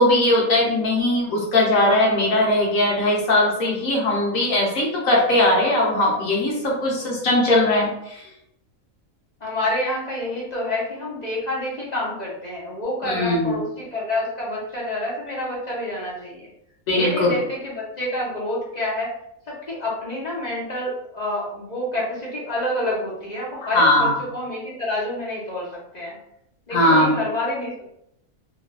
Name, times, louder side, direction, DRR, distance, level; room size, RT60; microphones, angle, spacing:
voice 1, 0.0-8.2 13.0-13.6 16.9-17.3 23.7-24.1 26.7-27.1, left 1 dB, 70° left, -3 dB, 1.3 m, -19 dB
voice 2, 9.4-16.5 16.9-19.1 19.5-26.1 26.7-27.9, left 1 dB, 40° left, -5 dB, 0.6 m, -28 dB
3.1 x 2.4 x 2.4 m, 0.77 s
omnidirectional pair, 1.5 m